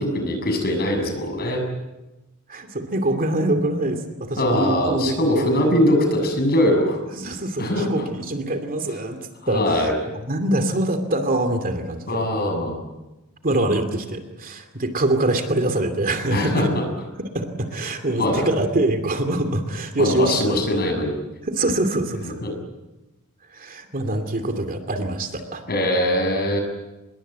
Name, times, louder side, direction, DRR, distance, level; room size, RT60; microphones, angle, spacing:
voice 1, 0.0-1.6 4.4-7.0 7.6-8.0 9.4-9.9 12.1-12.8 16.3-16.7 18.2-18.4 20.0-21.1 22.4-22.5 25.7-26.6, left 1 dB, 45° left, 4 dB, 7.3 m, -21 dB
voice 2, 2.5-5.5 7.1-9.2 9.5-12.2 13.4-16.7 17.2-20.6 21.4-22.3 23.5-25.6, right 1 dB, 40° right, 7 dB, 2.7 m, -24 dB
26.5 x 22.0 x 8.2 m, 1.1 s
head